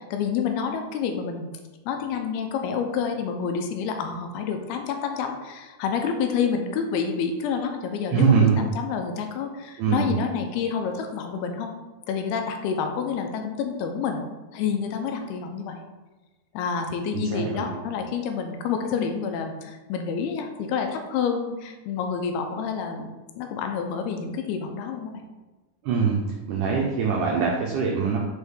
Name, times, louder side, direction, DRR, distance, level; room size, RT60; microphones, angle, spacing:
voice 1, 0.1-1.5 1.9-11.7 12.1-14.2 14.5-15.8 16.5-25.2, left 6 dB, 80° left, 5 dB, 2.6 m, -28 dB
voice 2, 8.1-8.6 9.8-10.1 17.1-17.7 25.8-26.2 26.5-28.2, right 6 dB, 90° right, -1 dB, 1.7 m, -22 dB
6.5 x 4.5 x 3.5 m, 1.2 s
omnidirectional pair, 4.6 m